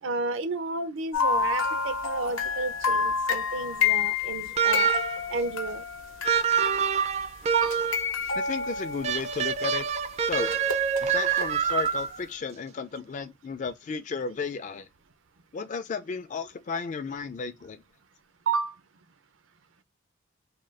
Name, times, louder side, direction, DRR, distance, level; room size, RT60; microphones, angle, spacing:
voice 1, 0.0-4.9 5.3-5.8 7.5-7.8 18.5-18.8, right 4 dB, 75° right, 0.6 m, -31 dB
sound 1, 1.1-7.0 7.6-9.7 10.5-11.5 11.8-11.9, left 6 dB, 85° left, 0.8 m, -29 dB
sound 2, 4.6-5.3 6.2-8.1 9.0-12.2, right 7 dB, 35° right, 0.4 m, -26 dB
voice 2, 8.4-9.9 10.2-10.6 11.0-14.9 15.5-17.8, left 5 dB, 40° left, 0.3 m, -34 dB
3.7 x 2.3 x 3.1 m
head